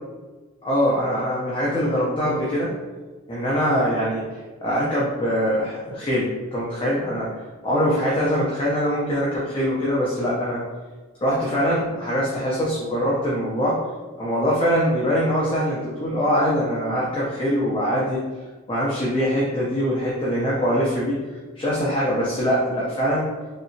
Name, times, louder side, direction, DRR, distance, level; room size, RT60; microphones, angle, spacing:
voice 1, 0.6-2.7 3.3-4.3 4.6-7.3 7.6-10.6 11.2-13.8 14.2-18.2 18.7-21.2 21.6-23.3, equal, 25° left, -6 dB, 0.5 m, -23 dB
3.2 x 2.8 x 2.7 m, 1.3 s
head